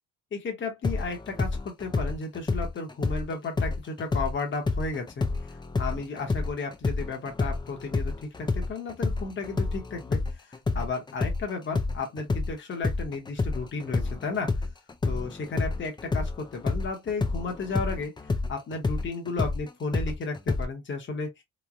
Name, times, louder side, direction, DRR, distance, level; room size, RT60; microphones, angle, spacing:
voice 1, 0.3-14.5 15.0-18.1 18.5-21.3, left 4 dB, 40° left, 1.0 m, -34 dB
sound 1, 0.8-4.3 4.7-12.5 12.8-20.7, left 3 dB, 15° left, 0.4 m, -29 dB
3.1 x 2.1 x 2.4 m
cardioid pair, 90°, 30 cm